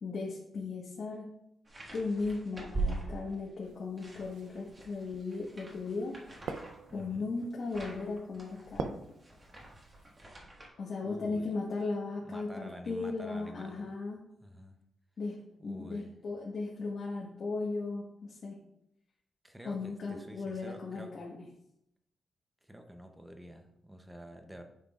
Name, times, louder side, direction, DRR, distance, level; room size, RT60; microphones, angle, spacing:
voice 1, 0.0-1.3 1.9-6.1 6.9-9.0 10.8-14.2 15.2-18.6 19.6-21.4, left 3 dB, 50° left, -4 dB, 1.3 m, -37 dB
sound 1, 1.7-3.6 4.0-10.7, right 3 dB, 25° right, 1.5 m, -42 dB
sound 2, 3.6-10.2, right 5 dB, 75° right, 0.5 m, -46 dB
voice 2, 6.9-7.4 11.0-11.6 12.0-14.0 14.4-14.8 15.6-16.1 19.4-21.2 22.6-24.6, equal, 5° right, 5 dB, 0.6 m, -48 dB
9.3 x 6.1 x 2.4 m, 0.80 s
wide cardioid pair, 160°, 0 cm